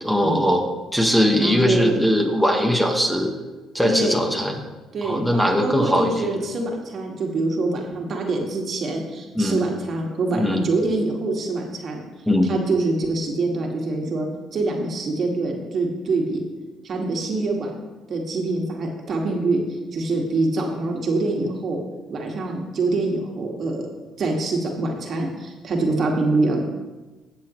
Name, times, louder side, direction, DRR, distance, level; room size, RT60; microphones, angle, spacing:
voice 1, 0.0-0.7 0.9-3.3 3.7-4.6 5.0-6.3 9.3-9.6 10.3-10.6 12.3-12.5, equal, 5° left, 2 dB, 1.6 m, -20 dB
voice 2, 1.4-2.0 3.8-4.3 4.9-12.0 12.4-16.4 16.8-17.7 18.1-21.8 22.1-23.9 24.2-26.7, right 2 dB, 55° right, 0 dB, 2.0 m, -25 dB
16.0 x 6.7 x 3.2 m, 1.2 s
supercardioid pair, 65°, 0 cm